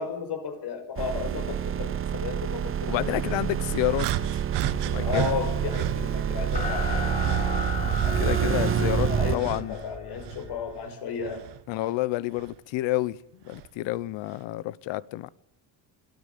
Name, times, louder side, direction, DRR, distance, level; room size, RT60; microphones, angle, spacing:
voice 1, 0.0-3.2 5.0-7.1 8.0-8.6 9.0-9.4 9.7-11.5, left 6 dB, 65° left, 5.9 m, -34 dB
sound 1, 1.0-9.4, right 9 dB, 30° right, 0.7 m, -28 dB
voice 2, 2.9-4.1 4.8-5.4 8.2-9.8 11.7-13.2 13.4-15.3, left 16 dB, 80° left, 1.1 m, -29 dB
sound 2, 4.0-6.0 6.5-9.8 10.1-11.6 12.4-12.6 13.5-13.7, right 12 dB, 70° right, 1.6 m, -34 dB
sound 3, 5.8-10.9, left 3 dB, 15° left, 5.1 m, -35 dB
25.0 x 14.0 x 8.5 m
cardioid pair, 135°, 44 cm